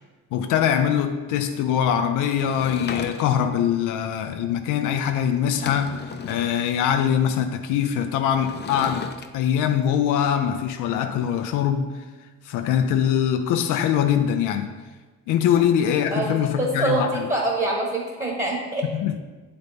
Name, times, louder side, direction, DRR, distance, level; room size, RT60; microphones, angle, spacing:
voice 1, 0.3-12.0 12.4-14.7 15.3-17.3 18.9-19.2, left 9 dB, 90° left, 0.5 m, -23 dB
Sliding door / Wood, 2.4-3.6 5.1-5.2 5.4-6.6 8.3-9.3, left 5 dB, 35° left, 0.5 m, -35 dB
voice 2, 16.1-18.9, right 2 dB, 25° right, 1.3 m, -25 dB
7.8 x 3.9 x 3.5 m
cardioid pair, 90°, 30 cm